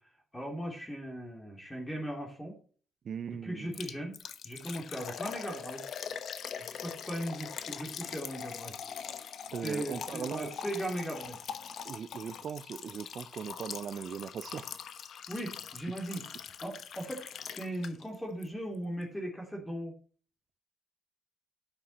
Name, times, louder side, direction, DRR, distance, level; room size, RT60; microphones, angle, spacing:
voice 1, 0.3-2.5 3.4-4.2 4.4-5.9 6.6-8.8 9.6-11.4 15.3-16.2 16.6-19.9, equal, 10° left, 3.1 m, -38 dB
voice 2, 3.0-3.8 9.5-10.5 11.8-14.7, right 7 dB, 55° right, 0.5 m, -39 dB
Liquid, 3.7-18.1 18.4-18.5 19.0-19.1, left 8 dB, 65° left, 1.0 m, -42 dB
11.5 x 6.0 x 4.2 m
cardioid pair, 90°, 0 cm